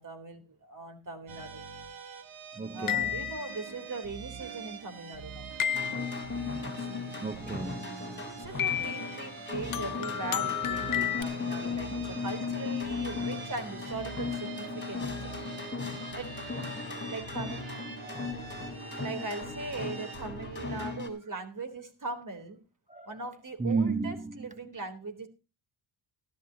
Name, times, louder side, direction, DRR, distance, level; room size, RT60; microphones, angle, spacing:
voice 1, 0.0-1.7 2.7-5.5 6.6-7.2 8.1-15.4 15.8-16.4 17.0-17.6 19.0-22.6 23.1-25.3, right 3 dB, 40° right, 3.7 m, -40 dB
sound 1, 1.3-21.0, right 5 dB, 75° right, 3.1 m, -44 dB
voice 2, 2.6-3.1 7.2-8.2 18.0-18.3 22.9-23.1 23.6-24.3, right 4 dB, 15° right, 1.1 m, -33 dB
sound 2, 2.9-3.7 5.6-6.3 8.6-9.2 9.7-11.2, left 10 dB, 40° left, 0.8 m, -31 dB
sound 3, 5.7-21.1, left 4 dB, 25° left, 4.0 m, -37 dB
16.5 x 13.0 x 2.9 m
cardioid pair, 90°, 49 cm